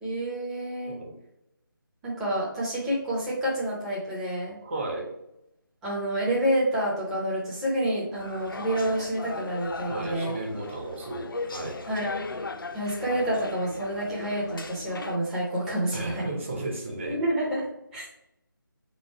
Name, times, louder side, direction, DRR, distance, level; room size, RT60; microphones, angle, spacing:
voice 1, 0.0-1.0 2.0-4.6 5.8-10.3 11.9-12.3 12.7-16.3 17.1-18.1, right 1 dB, 5° right, -6 dB, 0.5 m, -28 dB
voice 2, 4.6-5.1 9.9-11.2 11.5-11.8 15.9-17.2, right 2 dB, 35° right, 0 dB, 1.1 m, -34 dB
sound 1, 8.2-15.2, left 3 dB, 75° left, 0.5 m, -38 dB
3.9 x 3.1 x 4.4 m, 0.84 s
figure-of-eight pair, 160°, 12 cm